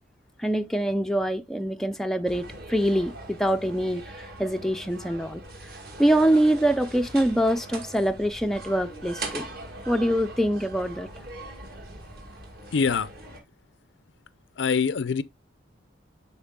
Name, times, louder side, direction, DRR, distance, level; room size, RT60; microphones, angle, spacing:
voice 1, 0.4-4.1 4.4-5.4 6.0-9.5 9.9-11.1, right 1 dB, ahead, 0.4 m, -24 dB
sound 1, 2.3-13.4, right 2 dB, 50° right, 2.0 m, -41 dB
voice 2, 12.7-13.1 14.6-15.2, left 5 dB, 70° left, 0.5 m, -24 dB
11.5 x 4.4 x 2.2 m
head